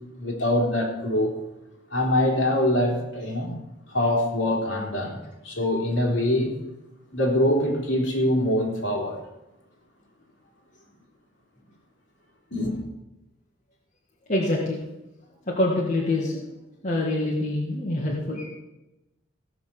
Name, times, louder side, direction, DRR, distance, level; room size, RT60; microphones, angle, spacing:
voice 1, 0.2-1.3 1.9-3.6 3.9-6.5 7.1-9.2 12.5-12.7, left 1 dB, 60° left, -1 dB, 3.5 m, -24 dB
voice 2, 14.3-14.8 15.5-16.4 16.8-18.5, left 1 dB, 40° left, -4 dB, 1.9 m, -25 dB
16.5 x 5.9 x 6.9 m, 0.98 s
head